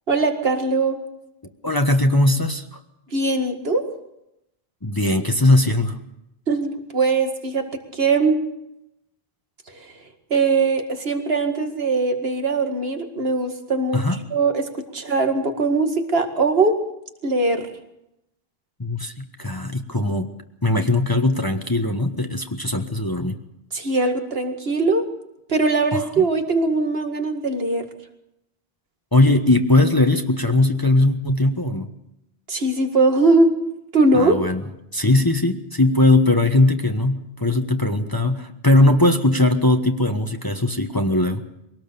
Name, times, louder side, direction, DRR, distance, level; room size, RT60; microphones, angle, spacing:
voice 1, 0.1-1.0 3.1-3.8 6.5-7.6 7.9-8.4 10.3-14.0 14.3-16.8 17.2-17.7 23.7-25.1 25.5-27.8 32.5-33.5 33.9-34.4, right 3 dB, 70° right, 6 dB, 2.3 m, -20 dB
voice 2, 1.6-2.8 4.8-6.0 13.9-14.2 18.8-20.3 20.6-23.4 25.9-26.2 29.1-31.9 34.1-34.6 34.9-41.4, left 2 dB, 20° left, 5 dB, 1.2 m, -19 dB
23.5 x 18.5 x 6.9 m, 0.85 s
omnidirectional pair, 1.0 m